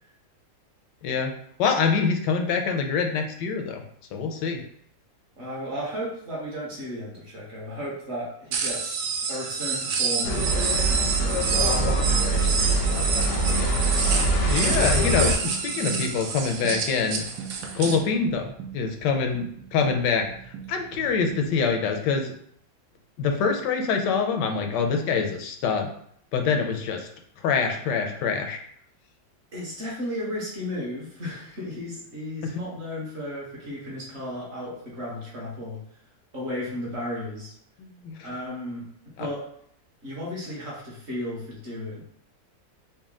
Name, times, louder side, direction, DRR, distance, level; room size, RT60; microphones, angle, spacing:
voice 1, 1.6-3.8 4.1-4.6 14.5-17.2 17.7-20.3 20.7-22.3 23.2-25.9 26.3-27.1 27.4-28.6 32.4-32.5 37.8-38.3 39.2-39.3, left 5 dB, 80° left, 4 dB, 1.2 m, -25 dB
voice 2, 5.4-9.0 9.3-13.1 29.5-35.8 36.3-37.5 38.2-38.8 39.2-39.4 40.0-42.0, left 1 dB, 40° right, -5 dB, 1.3 m, -34 dB
sound 1, 8.5-18.0, right 5 dB, 70° right, 0.8 m, -28 dB
sound 2, 10.2-15.3, right 1 dB, 65° left, 0.9 m, -24 dB
sound 3, 14.0-21.7, right 8 dB, 85° right, 1.3 m, -40 dB
4.1 x 2.2 x 3.7 m, 0.67 s
omnidirectional pair, 1.9 m